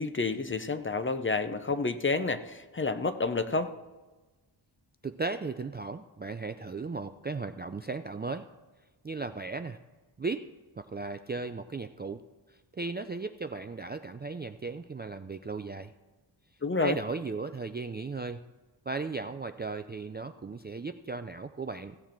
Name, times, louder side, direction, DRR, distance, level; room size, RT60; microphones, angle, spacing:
voice 1, 0.0-3.7 16.6-17.0, left 3 dB, 25° left, 10 dB, 0.6 m, -29 dB
voice 2, 5.0-8.4 9.0-9.8 10.2-10.5 10.8-12.2 12.5-15.9 16.8-18.4 18.9-22.0, right 4 dB, 25° right, 8 dB, 0.3 m, -36 dB
16.0 x 7.2 x 4.4 m, 1.2 s
wide cardioid pair, 105°, 47 cm